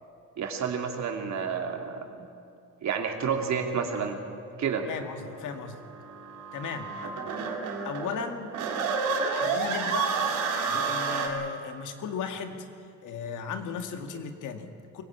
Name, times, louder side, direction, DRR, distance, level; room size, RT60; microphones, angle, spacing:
voice 1, 0.4-2.3 2.8-4.2 4.6-4.8, right 6 dB, 65° right, 3 dB, 2.9 m, -30 dB
sound 1, 4.8-11.3, right 5 dB, 90° right, 2.6 m, -30 dB
voice 2, 4.9-5.8 6.5-6.9 7.9-8.5 9.3-10.1 10.7-12.7 13.0-15.0, left 6 dB, 85° left, 6 dB, 2.2 m, -36 dB
24.0 x 16.5 x 8.8 m, 2.5 s
cardioid pair, 90°, 30 cm